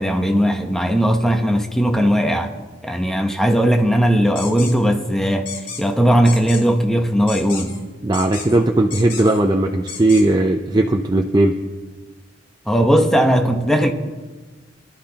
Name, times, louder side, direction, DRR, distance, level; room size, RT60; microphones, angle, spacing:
voice 1, 0.0-2.5 2.8-5.5 5.8-7.8 12.7-13.9, equal, 5° left, 0.9 m, -18 dB
sound 1, 4.4-4.7 5.5-5.8 6.2-6.6 7.3-7.8 8.1-8.6 8.9-9.4 9.9-10.2, left 6 dB, 80° left, 4.2 m, -32 dB
voice 2, 8.0-11.5, right 2 dB, 20° right, 0.6 m, -17 dB
25.0 x 12.0 x 2.9 m
head